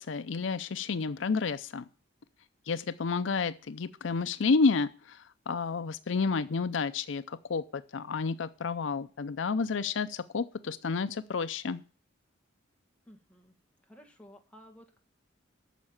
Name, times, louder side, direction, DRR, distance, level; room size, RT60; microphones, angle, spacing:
voice 1, 0.0-1.8 2.7-11.8, left 4 dB, 70° left, 12 dB, 0.5 m, -30 dB
voice 2, 13.1-13.6 13.8-15.0, equal, 5° left, 2 dB, 1.7 m, -54 dB
9.3 x 6.5 x 8.6 m, 0.39 s
head